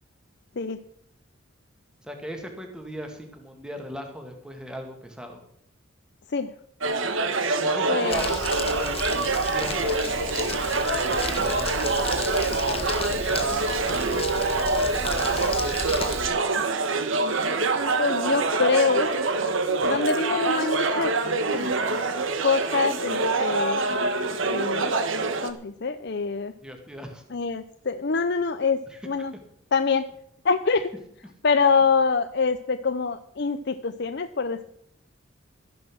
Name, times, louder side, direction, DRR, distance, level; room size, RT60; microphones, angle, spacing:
voice 1, 2.0-5.4 7.4-10.0 10.3-13.6 14.0-15.6 19.8-20.0 26.6-27.2 28.9-29.0 31.7-31.8, equal, 5° right, 3 dB, 1.9 m, -39 dB
sound 1, 6.8-25.5, right 3 dB, 75° right, 1.4 m, -25 dB
voice 2, 7.9-8.4 18.0-19.1 19.8-21.1 21.5-21.8 22.4-23.8 24.5-24.9 25.4-26.5 27.3-28.8 29.0-29.3 29.7-30.1 30.4-30.9 31.4-34.6, left 5 dB, 55° left, 9 dB, 0.6 m, -25 dB
Crumpling crinkling, 8.1-16.3, left 3 dB, 30° left, 1.4 m, -33 dB
13.5 x 10.5 x 6.2 m, 0.71 s
head